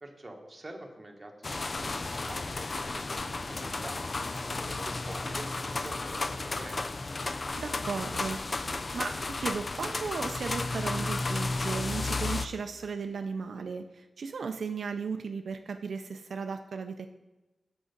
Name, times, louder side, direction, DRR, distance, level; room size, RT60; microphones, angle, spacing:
voice 1, 0.0-2.6 2.9-4.0 4.5-6.8, right 1 dB, 25° right, 2 dB, 1.3 m, -46 dB
sound 1, 1.4-12.5, left 3 dB, 40° left, 0.4 m, -33 dB
voice 2, 7.6-17.1, right 5 dB, 80° right, 6 dB, 0.4 m, -36 dB
6.9 x 6.2 x 5.2 m, 1.1 s
wide cardioid pair, 85°, 0 cm